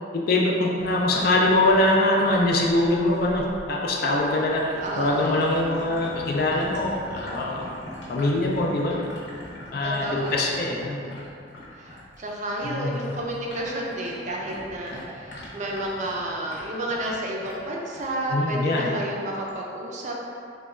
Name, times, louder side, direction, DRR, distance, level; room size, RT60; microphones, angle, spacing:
voice 1, 0.1-4.7 5.0-7.6 8.1-9.1 9.7-11.0 12.6-13.1 18.3-18.9, left 2 dB, 55° left, -2 dB, 0.4 m, -23 dB
sound 1, 0.8-12.7 13.0-18.1 18.5-18.8 19.4-19.6, left 1 dB, 70° left, 0.8 m, -41 dB
voice 2, 4.8-5.5 9.8-10.7 11.7-20.1, right 1 dB, 40° right, -2 dB, 0.4 m, -31 dB
3.0 x 2.2 x 3.6 m, 2.5 s
head